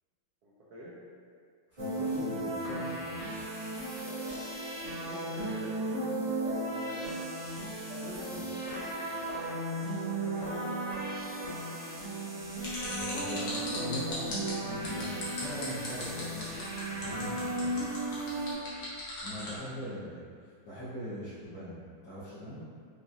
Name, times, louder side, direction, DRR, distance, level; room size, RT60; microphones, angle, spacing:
voice 1, 0.4-1.0 4.0-7.5 7.8-11.9 12.7-14.3, equal, 70° right, -7 dB, 0.9 m, -48 dB
voice 2, 1.7-3.3 8.3-8.5 12.9-14.2 14.6-16.5 16.9-18.4 19.2-22.6, equal, 70° left, -15 dB, 1.7 m, -41 dB
sound 1, 1.8-18.5, right 1 dB, 40° right, 0.4 m, -35 dB
sound 2, 12.6-19.5, left 2 dB, 50° left, 1.0 m, -39 dB
4.8 x 2.9 x 2.6 m, 2.1 s
omnidirectional pair, 2.2 m